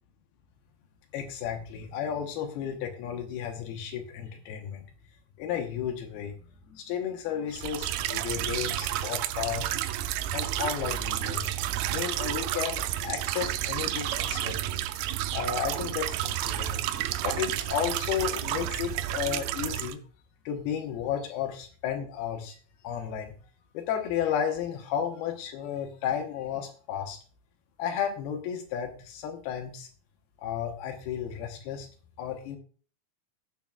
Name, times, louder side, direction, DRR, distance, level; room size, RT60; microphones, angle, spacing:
voice 1, 1.1-4.8 5.4-6.4 6.7-9.9 10.3-11.6 11.9-14.8 15.3-16.8 17.2-20.0 20.5-22.6 22.8-23.3 23.7-27.2 27.8-29.9 30.4-31.9 32.2-32.6, left 9 dB, 85° left, 3 dB, 3.1 m, -33 dB
sound 1, 7.5-19.9, right 13 dB, 90° right, 2.5 m, -31 dB
18.0 x 7.0 x 2.3 m, 0.40 s
omnidirectional pair, 4.4 m